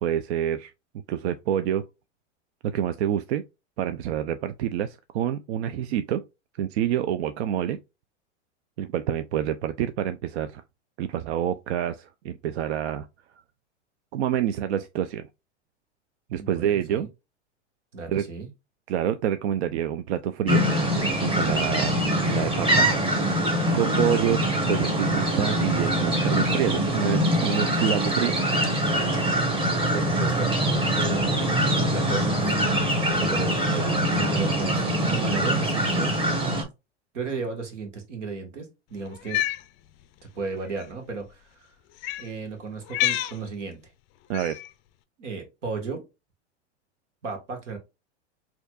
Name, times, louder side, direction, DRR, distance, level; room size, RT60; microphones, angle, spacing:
voice 1, 0.0-0.7 1.1-1.9 2.6-3.4 3.8-6.2 6.6-7.8 8.8-10.6 11.0-13.1 14.1-15.3 16.3-17.1 18.1-18.3 18.9-20.7 21.2-22.9 23.7-24.4 24.7-28.4 44.3-44.6, right 10 dB, 65° right, 0.5 m, -27 dB
voice 2, 16.4-17.1 17.9-18.5 29.9-30.5 30.9-31.4 31.9-32.5 33.2-36.2 37.1-39.4 40.3-41.7 42.2-43.8 45.2-46.0 47.2-47.8, right 4 dB, 85° right, 1.5 m, -34 dB
sound 1, 20.5-36.6, equal, 15° right, 1.2 m, -23 dB
Cat, 39.1-39.6 40.7-40.8 42.0-42.3 42.9-43.4 44.3-44.7, left 14 dB, 35° left, 0.4 m, -27 dB
4.3 x 2.8 x 2.3 m
hypercardioid pair, 105°, 35 cm